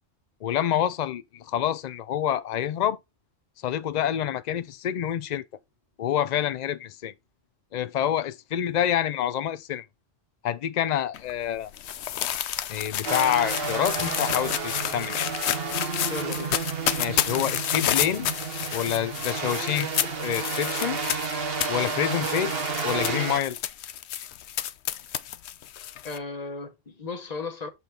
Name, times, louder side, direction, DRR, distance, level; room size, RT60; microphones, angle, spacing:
voice 1, 0.4-3.0 3.6-5.4 6.0-7.1 7.7-9.8 10.4-11.7 12.7-15.3 17.0-18.3 18.7-19.9 20.2-21.0 21.7-22.5 22.8-23.6, left 10 dB, 85° left, 0.3 m, -27 dB
sound 1, 11.1-26.2, left 11 dB, 65° left, 0.8 m, -30 dB
sound 2, 13.0-23.4, right 4 dB, 50° right, 1.3 m, -31 dB
voice 2, 16.1-16.6 26.0-27.7, left 3 dB, 35° left, 1.1 m, -35 dB
6.7 x 4.5 x 3.8 m
omnidirectional pair, 1.3 m